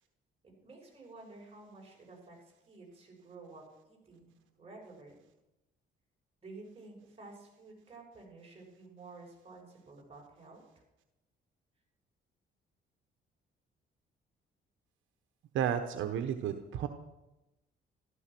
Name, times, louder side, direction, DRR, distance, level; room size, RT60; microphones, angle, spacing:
voice 1, 0.4-5.2 6.4-10.6, right 3 dB, 30° right, -1 dB, 6.6 m, -52 dB
voice 2, 15.5-16.9, right 9 dB, 80° right, 7 dB, 1.1 m, -32 dB
15.0 x 13.0 x 6.1 m, 0.95 s
cardioid pair, 90°, 20 cm